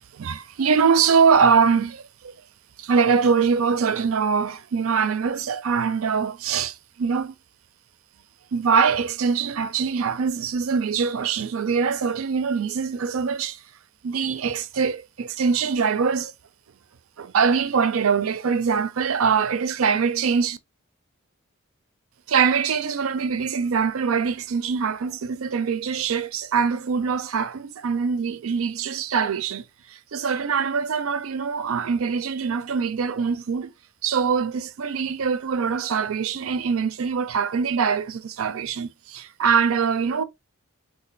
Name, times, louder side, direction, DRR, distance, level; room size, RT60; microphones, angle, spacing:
voice 1, 0.1-2.3 2.8-7.3 8.5-13.6 14.0-16.3 17.2-20.6 22.3-29.6 29.9-33.7 34.0-40.2, right 6 dB, 75° right, 0.5 m, -23 dB
3.2 x 2.4 x 3.8 m
head